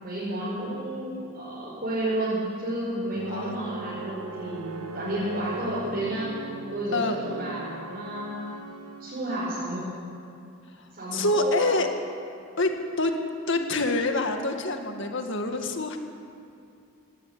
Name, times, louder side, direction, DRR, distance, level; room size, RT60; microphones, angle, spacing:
voice 1, 0.0-8.4 9.0-9.8 10.9-11.7, right 1 dB, 40° right, -9 dB, 5.8 m, -31 dB
sound 1, 3.1-9.6, right 2 dB, 80° right, 1.4 m, -40 dB
voice 2, 11.1-11.9 12.6-13.2 13.5-16.0, left 2 dB, 55° left, 5 dB, 2.0 m, -26 dB
19.0 x 18.0 x 8.5 m, 2.5 s
head